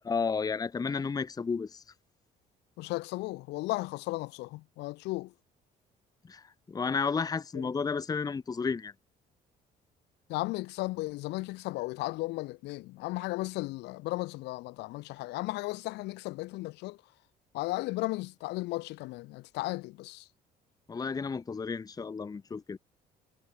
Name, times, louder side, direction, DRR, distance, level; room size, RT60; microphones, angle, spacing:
voice 1, 0.1-1.8 6.3-8.9 20.9-22.8, left 5 dB, 20° left, 0.9 m, -32 dB
voice 2, 2.8-5.3 7.5-7.7 10.3-17.0 17.5-20.3, left 20 dB, 90° left, 1.7 m, -35 dB
cardioid pair, 110°, 17 cm